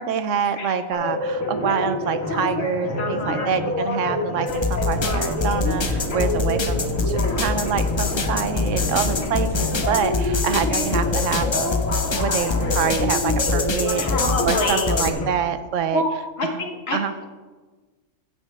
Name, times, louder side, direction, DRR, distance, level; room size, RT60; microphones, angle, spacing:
voice 1, 0.0-11.8 12.2-16.0 16.4-16.6 16.9-17.1, right 7 dB, 75° right, 10 dB, 1.0 m, -26 dB
sound 1, 0.9-15.3, left 2 dB, 85° left, 1.9 m, -27 dB
voice 2, 2.9-3.5 9.1-9.8 14.0-15.0 15.9-16.1 16.4-17.3, left 2 dB, 55° left, 3 dB, 1.4 m, -28 dB
sound 2, 4.5-15.1, left 3 dB, 30° left, 0.5 m, -25 dB
13.5 x 7.4 x 3.3 m, 1.3 s
omnidirectional pair, 1.3 m